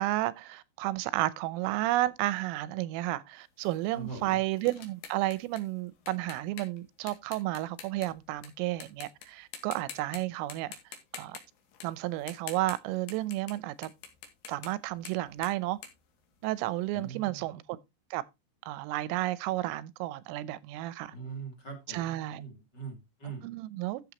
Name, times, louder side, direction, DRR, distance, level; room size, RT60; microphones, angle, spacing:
voice 1, 0.0-10.7 11.1-11.4 11.8-13.9 14.5-15.8 16.4-17.8 18.1-18.2 18.7-21.1 21.9-22.4 23.4-24.0, right 17 dB, 90° right, 3.3 m, -32 dB
sound 1, 3.6-8.5 8.8-9.3 9.5-10.2 10.5-13.6 13.8-16.8, left 7 dB, 70° left, 4.3 m, -47 dB
voice 2, 3.9-4.4 16.9-17.4 21.1-22.0 22.3-23.4, right 4 dB, 30° left, 2.3 m, -42 dB
13.5 x 7.6 x 2.9 m
omnidirectional pair, 5.7 m